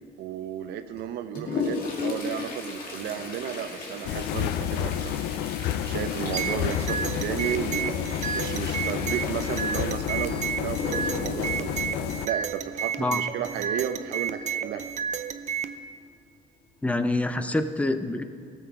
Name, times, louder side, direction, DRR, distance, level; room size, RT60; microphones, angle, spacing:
voice 1, 0.2-5.1 5.8-11.8 12.2-14.8, right 10 dB, 80° right, 9 dB, 0.7 m, -33 dB
Toilet flush, 0.9-12.9 14.8-14.9 15.2-15.3 16.1-16.2 16.9-17.1 17.6-17.7, left 4 dB, 55° left, 2.2 m, -36 dB
sound 1, 4.1-12.3, left 11 dB, 85° left, 0.5 m, -30 dB
sound 2, 6.3-15.8, right 7 dB, 45° right, 0.6 m, -32 dB
voice 2, 16.8-18.2, left 2 dB, 10° left, 9 dB, 0.6 m, -26 dB
17.0 x 7.2 x 4.6 m, 2.2 s
cardioid pair, 110°, 17 cm